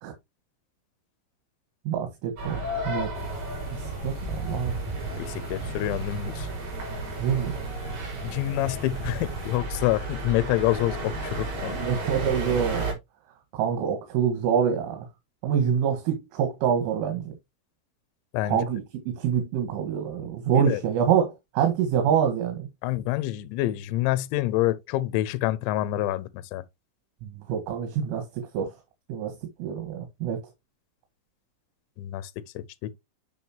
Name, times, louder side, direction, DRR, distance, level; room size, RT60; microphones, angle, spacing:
voice 1, 1.9-3.1 3.7-4.8 7.2-7.6 11.6-12.8 13.5-15.1 15.4-17.3 18.4-22.7 27.2-28.8 29.1-30.4, right 8 dB, 75° right, 3.9 m, -26 dB
sound 1, 2.4-12.9, right 2 dB, 45° right, 5.0 m, -33 dB
sound 2, 3.1-9.6, right 3 dB, 25° right, 0.6 m, -39 dB
voice 2, 5.2-6.5 8.2-11.7 18.3-18.6 20.5-20.8 22.8-26.6 32.0-32.6, left 15 dB, 80° left, 2.8 m, -27 dB
9.1 x 6.1 x 2.9 m
omnidirectional pair, 5.9 m